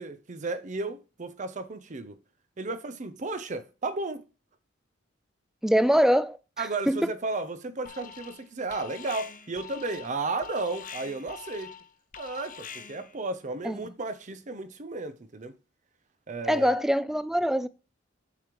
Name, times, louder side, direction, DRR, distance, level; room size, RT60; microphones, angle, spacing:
voice 1, 0.0-2.2 2.6-4.2 6.6-11.7 12.2-15.5 16.3-16.8, right 3 dB, 40° right, 0.6 m, -34 dB
voice 2, 5.6-7.1 13.6-13.8 16.5-17.7, equal, ahead, 0.3 m, -24 dB
Alarm, 7.8-8.4 8.7-13.2, left 6 dB, 45° left, 0.7 m, -44 dB
6.9 x 6.7 x 3.0 m
head